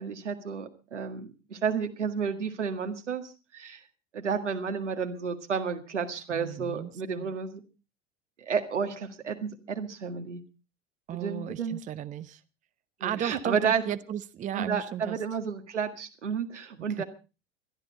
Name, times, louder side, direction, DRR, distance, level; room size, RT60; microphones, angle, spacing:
voice 1, 0.0-3.8 4.1-7.6 8.4-10.4 11.1-11.8 13.0-13.8 14.5-17.0, right 6 dB, 75° right, 1.9 m, -31 dB
voice 2, 6.3-6.9 7.2-7.3 11.1-12.4 13.0-15.2 17.0-17.1, right 10 dB, 20° right, 0.7 m, -35 dB
21.0 x 13.0 x 4.1 m
figure-of-eight pair, 80°, 36 cm